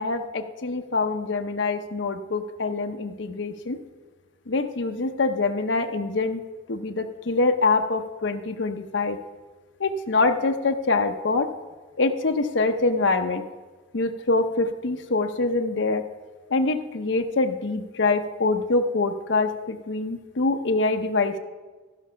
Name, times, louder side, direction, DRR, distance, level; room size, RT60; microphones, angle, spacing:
voice 1, 0.0-3.8 4.5-6.4 6.7-9.2 9.8-11.5 12.0-13.4 13.9-16.0 16.5-21.4, left 3 dB, 80° left, 6 dB, 0.8 m, -24 dB
14.5 x 6.1 x 5.7 m, 1.3 s
head